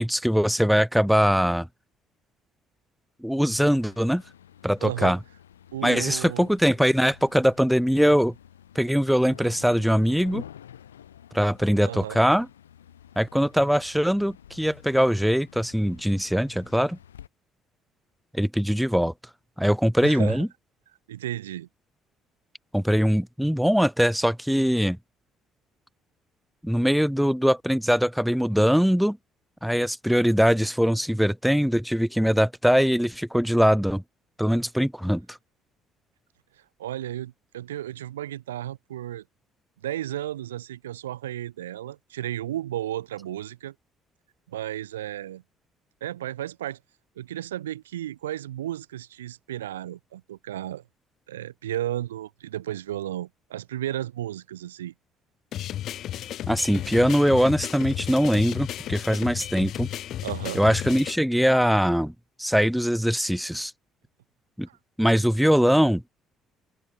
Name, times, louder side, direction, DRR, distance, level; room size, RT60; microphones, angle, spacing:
voice 1, 0.0-1.7 3.2-4.2 4.6-5.2 5.8-8.3 8.8-10.4 11.3-12.5 13.2-17.0 18.3-19.1 19.6-20.5 22.7-25.0 26.6-29.2 29.6-34.0 34.4-35.4 56.5-59.9 60.5-62.1 62.4-63.7 64.6-64.7 65.0-66.0, equal, ahead, 0.5 m, -22 dB
sound 1, 3.5-17.3, left 10 dB, 80° left, 1.9 m, -49 dB
voice 2, 4.8-5.2 5.7-6.5 11.8-12.2 20.0-20.4 21.1-21.7 36.8-39.2 39.8-43.7 44.5-45.4 46.0-46.8 47.2-50.8 51.3-54.9 60.2-60.6 64.7-64.8, right 12 dB, 75° right, 1.6 m, -33 dB
sound 2, 55.5-61.2, left 12 dB, 55° left, 1.1 m, -33 dB
figure-of-eight pair, 50°, 0 cm